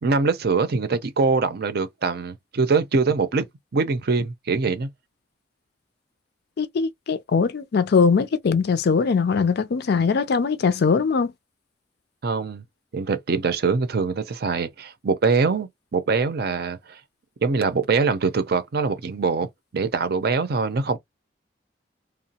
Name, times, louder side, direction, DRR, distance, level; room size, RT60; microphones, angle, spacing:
voice 1, 0.0-3.5 3.7-4.9 12.2-12.6 12.9-17.0 17.4-21.0, right 4 dB, 55° right, 0.6 m, -23 dB
voice 2, 6.6-11.3, left 5 dB, 60° left, 0.4 m, -21 dB
3.0 x 2.0 x 2.8 m
head